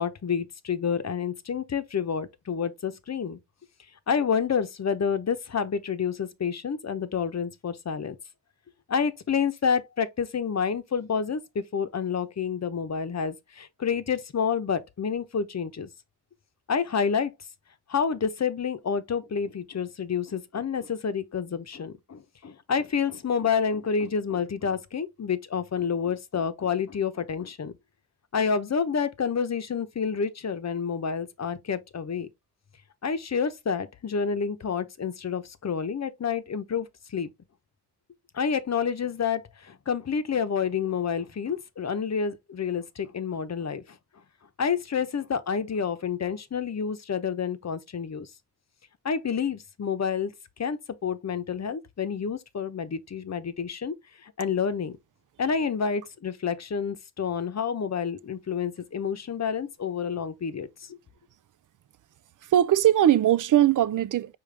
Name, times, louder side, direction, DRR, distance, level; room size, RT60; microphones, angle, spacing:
voice 1, 0.0-3.4 4.1-8.1 8.9-15.9 16.7-17.3 17.9-27.7 28.3-32.3 33.0-37.3 38.3-43.8 44.6-48.3 49.0-50.3 50.6-53.9 54.2-55.0 55.4-61.0, left 6 dB, 40° left, 0.8 m, -29 dB
voice 2, 62.4-64.3, right 12 dB, 50° right, 0.5 m, -20 dB
5.1 x 3.1 x 3.3 m
cardioid pair, 60°, 40 cm